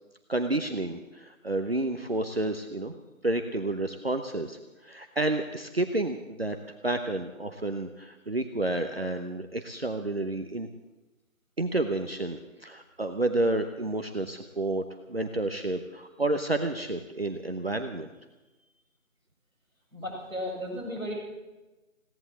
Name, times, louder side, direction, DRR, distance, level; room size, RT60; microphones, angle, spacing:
voice 1, 0.3-2.9 3.2-6.6 6.8-10.7 11.6-18.1, right 2 dB, 45° right, 6 dB, 0.9 m, -30 dB
voice 2, 19.9-21.1, equal, ahead, -18 dB, 4.6 m, -34 dB
17.0 x 11.0 x 7.4 m, 1.1 s
figure-of-eight pair, 175°, 41 cm